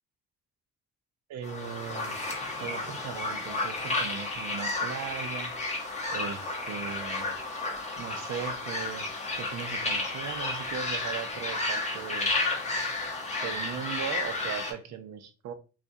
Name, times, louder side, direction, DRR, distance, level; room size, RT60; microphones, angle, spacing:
voice 1, 1.3-2.2 2.6-5.6 6.1-7.3 8.0-9.1 9.4-12.6 13.4-15.5, right 8 dB, 65° right, 10 dB, 0.5 m, -38 dB
sound 1, 1.4-14.7, left 2 dB, 25° left, 0.6 m, -32 dB
2.3 x 2.1 x 2.6 m, 0.35 s
cardioid pair, 90°, 30 cm